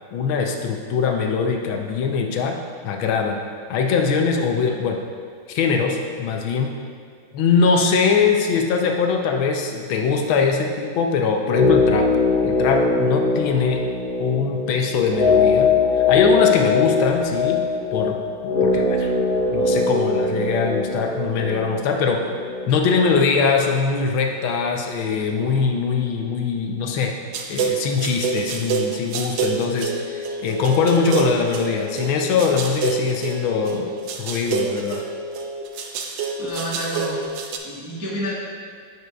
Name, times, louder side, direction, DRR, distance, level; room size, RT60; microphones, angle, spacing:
voice 1, 0.1-2.6 2.8-3.4 3.7-5.0 5.5-6.7 7.3-12.1 12.4-13.8 14.2-15.7 16.1-17.6 17.9-18.2 18.4-19.1 19.5-22.2 22.7-27.1 27.5-33.9 34.2-35.0, left 5 dB, 80° left, 2 dB, 1.4 m, -22 dB
sound 1, 11.4-23.5 23.8-23.9, left 4 dB, 50° left, 1.6 m, -21 dB
sound 2, 27.3-37.6, right 5 dB, 70° right, 1.2 m, -27 dB
voice 2, 36.4-37.2 37.6-38.4, equal, 30° right, -7 dB, 0.3 m, -28 dB
9.2 x 6.1 x 2.3 m, 2.1 s
omnidirectional pair, 2.2 m